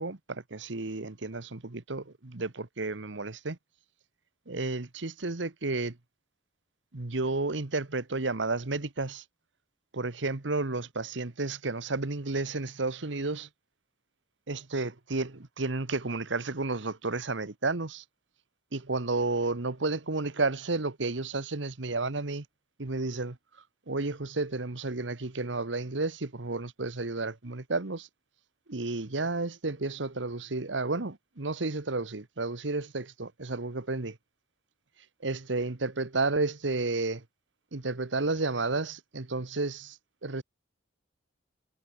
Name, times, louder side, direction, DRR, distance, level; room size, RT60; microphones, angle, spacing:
voice 1, 0.0-3.6 4.5-6.0 6.9-9.2 9.9-13.5 14.5-18.0 18.7-22.4 22.8-23.4 23.9-28.1 28.7-34.2 35.2-37.2 37.7-40.4, right 3 dB, 75° right, 1.4 m, -32 dB
head